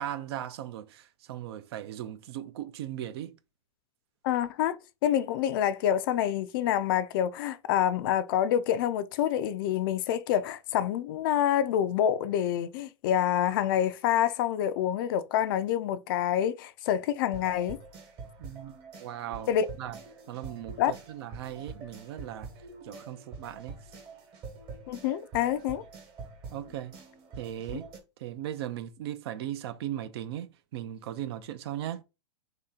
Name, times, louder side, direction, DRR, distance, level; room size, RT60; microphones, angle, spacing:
voice 1, 0.0-3.4 18.4-20.0 20.3-22.5 22.8-23.8 26.5-26.9 27.4-27.9 28.2-32.0, right 11 dB, 55° right, 0.5 m, -38 dB
voice 2, 4.2-4.8 5.0-17.8 19.5-19.7 20.8-20.9 24.9-25.8, left 10 dB, 45° left, 0.4 m, -27 dB
sound 1, 17.3-28.0, right 4 dB, 30° right, 1.2 m, -46 dB
3.2 x 2.8 x 3.7 m
hypercardioid pair, 145°, 16 cm